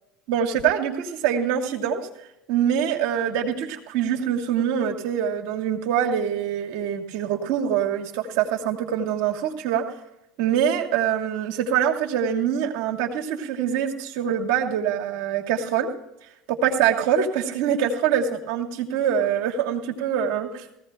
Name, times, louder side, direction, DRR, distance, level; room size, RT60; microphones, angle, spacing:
voice 1, 0.3-2.0 2.5-9.8 10.4-15.9 16.5-20.6, right 8 dB, 70° right, 1 dB, 1.7 m, -24 dB
19.5 x 15.5 x 2.2 m, 0.88 s
hypercardioid pair, 85°, 0 cm